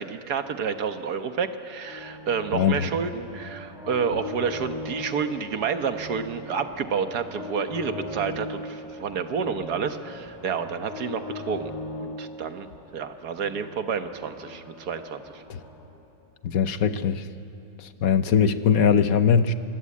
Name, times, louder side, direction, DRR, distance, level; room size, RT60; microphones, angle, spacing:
voice 1, 0.0-11.7 12.0-12.7 12.9-15.4, right 6 dB, 70° right, 8 dB, 1.7 m, -29 dB
sound 1, 1.8-15.8, left 2 dB, ahead, 7.7 m, -39 dB
voice 2, 2.5-2.9 15.5-15.6 16.4-17.3 17.8-19.5, left 7 dB, 65° left, 11 dB, 1.3 m, -21 dB
26.0 x 23.0 x 8.5 m, 2.9 s
omnidirectional pair, 1.7 m